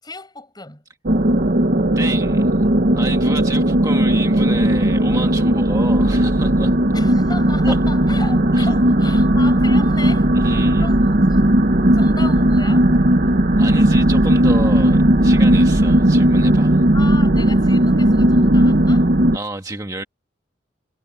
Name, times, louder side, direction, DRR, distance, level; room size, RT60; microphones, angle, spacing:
voice 1, 0.0-0.8 6.9-11.5 11.9-12.9 16.9-19.1, left 3 dB, 25° left, 7.6 m, -36 dB
sound 1, 1.1-19.4, right 1 dB, 50° right, 1.1 m, -16 dB
voice 2, 1.9-2.7 2.9-6.7 7.6-7.8 8.5-8.7 10.3-10.9 13.6-16.9 19.3-20.0, right 2 dB, 20° right, 1.6 m, -29 dB
head